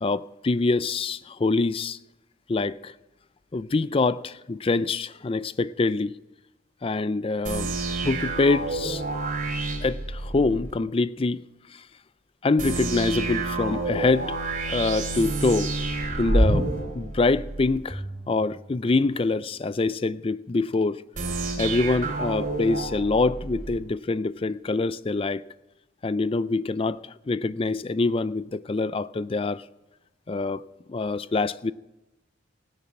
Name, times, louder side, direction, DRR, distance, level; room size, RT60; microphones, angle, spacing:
voice 1, 0.0-2.0 2.5-2.9 3.5-6.2 6.8-7.7 8.0-9.0 9.8-11.4 11.7-11.8 12.4-14.4 14.7-15.7 16.2-16.7 16.9-21.0 21.6-25.4 26.0-27.0 27.3-29.6 30.3-31.7, left 3 dB, 30° left, 0.4 m, -25 dB
sound 1, 7.4-10.7 12.6-17.8 21.1-23.8, right 2 dB, 45° right, 3.2 m, -28 dB
Bowed string instrument, 17.9-20.3, right 1 dB, 10° right, 0.8 m, -43 dB
16.5 x 10.0 x 5.9 m
head